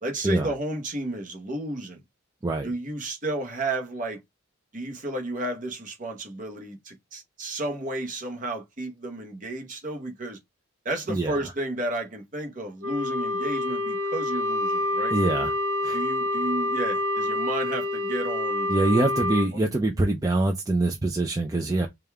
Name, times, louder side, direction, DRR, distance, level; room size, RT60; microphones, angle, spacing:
voice 1, 0.0-2.0 2.6-4.2 4.7-10.4 10.8-15.2 15.9-18.7 19.5-19.7 21.8-21.9, right 2 dB, 35° right, 1.0 m, -32 dB
Wind instrument woodwind instrument, 12.8-19.5, left 1 dB, 70° right, 0.8 m, -27 dB
voice 2, 15.1-15.5 15.8-16.0 18.7-21.9, right 2 dB, 15° right, 0.4 m, -24 dB
5.1 x 2.4 x 3.3 m
head